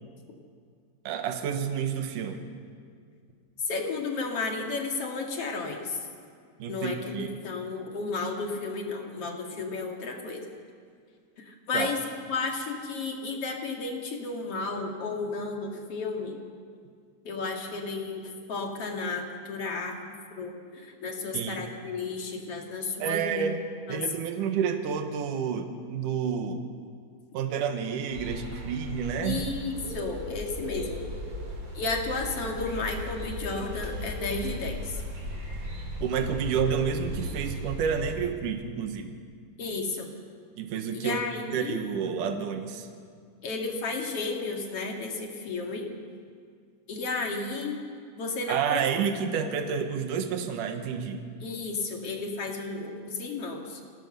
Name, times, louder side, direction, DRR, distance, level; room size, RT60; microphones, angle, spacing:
voice 1, 1.1-2.5 6.6-7.3 11.7-11.9 21.3-21.6 23.0-23.6 23.9-26.6 27.3-29.4 36.0-39.2 40.6-41.2 41.5-42.9 48.5-51.2, right 7 dB, 80° right, 6 dB, 2.8 m, -29 dB
voice 2, 3.7-6.1 6.7-10.4 11.4-12.0 12.3-16.4 17.2-23.5 23.9-24.0 29.2-31.0 31.7-35.0 39.6-40.1 40.9-41.8 43.4-45.9 46.9-47.8 48.2-48.8 51.4-53.8, left 3 dB, 50° left, 1 dB, 2.8 m, -33 dB
sound 1, 28.1-38.1, equal, 40° right, 4.2 m, -37 dB
25.0 x 17.5 x 6.8 m, 2.1 s
omnidirectional pair, 3.7 m